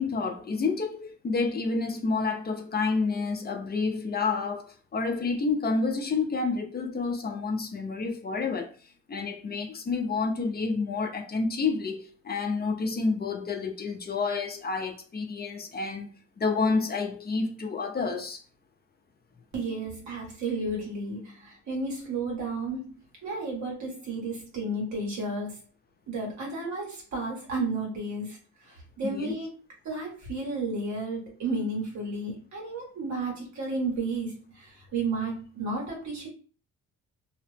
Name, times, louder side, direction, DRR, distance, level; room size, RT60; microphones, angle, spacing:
voice 1, 0.0-8.8 9.1-16.1 16.4-18.4 29.0-29.4, left 4 dB, 30° left, 0.6 m, -29 dB
voice 2, 19.5-25.6 26.1-28.4 28.6-29.5 29.8-36.3, right 3 dB, 65° right, 1.5 m, -32 dB
2.8 x 2.0 x 3.3 m
cardioid pair, 90°, 30 cm